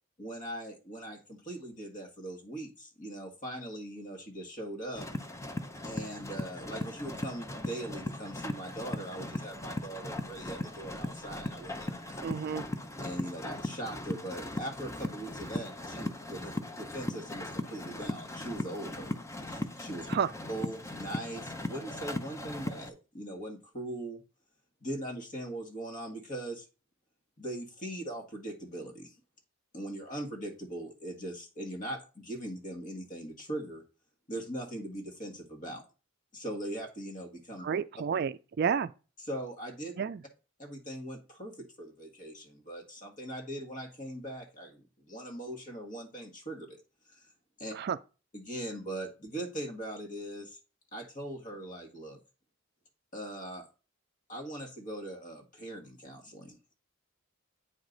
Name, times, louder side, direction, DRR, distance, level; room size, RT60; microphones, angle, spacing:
voice 1, 0.2-5.1 5.8-12.2 13.0-19.2 19.5-20.1 20.5-24.2 24.8-26.7 27.4-29.2 29.7-33.8 34.3-35.8 36.3-37.7 39.2-40.0 40.6-46.8 47.1-47.3 47.6-47.7 48.3-50.6 50.9-52.2 53.1-53.7 54.3-56.7, right 1 dB, 40° left, 1.8 m, -40 dB
sound 1, 5.0-22.9, left 1 dB, 15° left, 0.6 m, -38 dB
voice 2, 12.2-12.6 20.1-20.3 37.6-38.9 40.0-40.2 47.8-48.0, right 7 dB, 50° right, 0.3 m, -30 dB
8.7 x 4.8 x 3.9 m
head